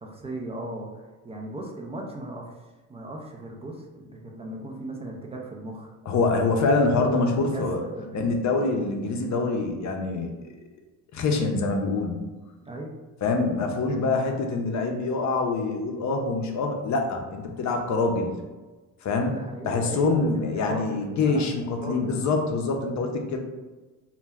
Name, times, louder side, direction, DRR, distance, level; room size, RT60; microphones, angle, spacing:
voice 1, 0.0-2.5 2.9-5.9 7.5-7.7 8.0-8.3 12.6-12.9 13.2-13.5 19.3-21.5 21.8-22.2, right 1 dB, 15° right, 0 dB, 0.3 m, -37 dB
voice 2, 6.1-7.8 8.1-10.3 11.1-12.2 13.2-18.3 19.0-23.4, left 3 dB, 40° left, 3 dB, 0.6 m, -25 dB
2.2 x 2.1 x 3.4 m, 1.2 s
supercardioid pair, 70°, 46 cm